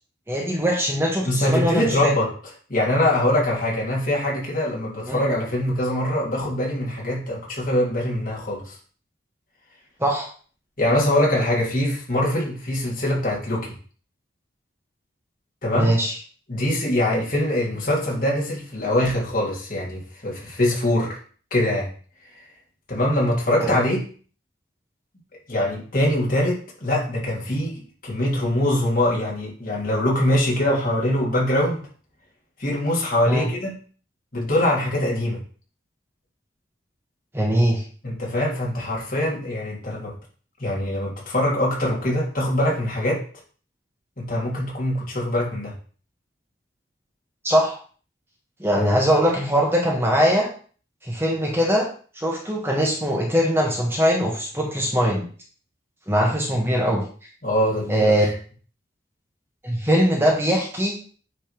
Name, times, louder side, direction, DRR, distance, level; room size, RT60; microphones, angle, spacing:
voice 1, 0.3-2.1 5.1-5.2 10.0-10.3 15.7-16.1 23.6-23.7 33.3-33.5 37.3-37.8 47.4-47.8 48.6-50.5 51.1-51.9 52.2-55.3 56.1-57.0 57.9-58.3 59.6-61.0, equal, 15° right, -2 dB, 1.6 m, -21 dB
voice 2, 1.3-2.3 2.7-8.7 10.8-13.7 15.6-15.9 16.5-21.2 21.5-21.9 22.9-24.0 25.5-31.8 32.6-33.7 34.3-35.4 38.0-40.1 40.6-43.2 44.2-45.7 48.8-48.9 57.4-58.3, left 1 dB, 45° left, -4 dB, 3.4 m, -23 dB
9.3 x 4.1 x 5.2 m, 0.42 s
head